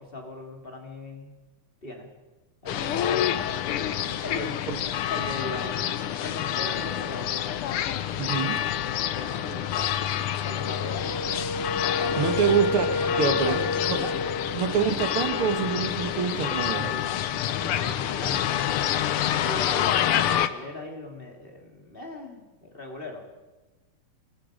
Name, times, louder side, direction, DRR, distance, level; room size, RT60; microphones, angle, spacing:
voice 1, 0.0-1.3 1.8-2.1 2.6-3.2 4.2-4.6 5.1-7.4 9.1-9.9 10.4-11.3 11.8-12.6 13.0-14.4 16.7-18.6 19.3-23.2, left 1 dB, 25° left, 1 dB, 3.0 m, -39 dB
sound 1, 2.7-20.5, left 10 dB, 85° left, 1.8 m, -28 dB
voice 2, 8.2-8.6 12.2-13.6 13.9-14.0 14.6-16.9, right 7 dB, 80° right, 8 dB, 2.2 m, -26 dB
Wind instrument woodwind instrument, 10.6-14.9, left 3 dB, 45° left, 1.1 m, -31 dB
27.0 x 19.0 x 5.1 m, 1.2 s
omnidirectional pair, 2.4 m